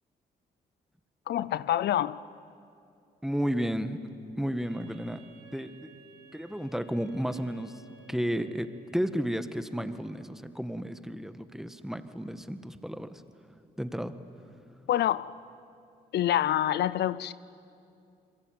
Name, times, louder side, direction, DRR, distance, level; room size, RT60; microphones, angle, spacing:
voice 1, 1.3-2.2 14.9-15.3 16.1-17.3, left 12 dB, 75° left, 0.6 m, -26 dB
voice 2, 3.2-4.0 4.4-5.2 5.5-5.9 6.3-7.8 8.1-8.7 8.9-13.2 13.8-14.1, equal, ahead, 1.7 m, -32 dB
Wind instrument woodwind instrument, 4.6-9.1, right 5 dB, 65° right, 6.2 m, -56 dB
28.5 x 22.0 x 9.3 m
supercardioid pair, 60°, 17 cm